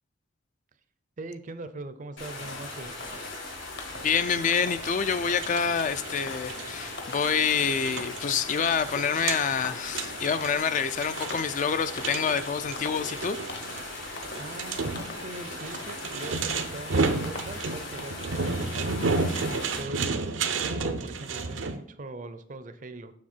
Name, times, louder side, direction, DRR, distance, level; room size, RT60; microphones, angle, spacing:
voice 1, 1.2-3.0 14.4-20.2 20.6-23.1, right 2 dB, 40° right, 0.5 m, -41 dB
sound 1, 2.2-19.8, left 2 dB, 80° left, 3.4 m, -39 dB
sound 2, 3.0-3.4 3.7-4.2 4.5-4.9 5.3-5.7 6.1-6.5 7.0-7.4 7.7-8.4 8.7-9.1 9.5-9.9 10.3-10.8 11.2-11.6 12.0-12.4 12.8-13.1 13.5-13.9 14.2-14.5 14.9-15.3 15.7-16.1 16.5-16.8 17.2-17.6 18.0-18.2, left 2 dB, 60° left, 1.1 m, -43 dB
voice 2, 4.0-13.8, left 6 dB, 40° left, 0.3 m, -27 dB
sound 3, 4.6-21.8, right 4 dB, 75° right, 0.7 m, -32 dB
7.4 x 6.0 x 4.4 m
head